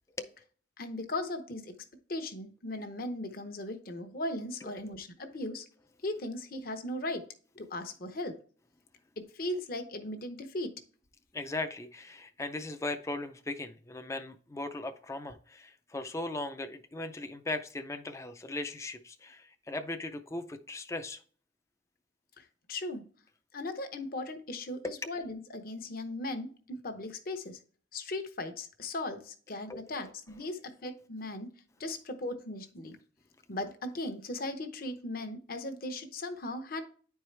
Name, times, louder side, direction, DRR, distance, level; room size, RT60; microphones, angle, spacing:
voice 1, 0.8-1.7 2.1-5.7 6.0-7.2 7.5-8.3 9.2-10.7 22.4-23.0 23.5-27.6 27.9-31.5 31.8-33.0 33.5-36.8, left 2 dB, 50° left, 0.9 m, -38 dB
voice 2, 4.6-4.9 11.3-21.2 24.8-24.9 29.7-30.0, left 2 dB, 15° left, 0.4 m, -38 dB
10.0 x 4.6 x 3.3 m
head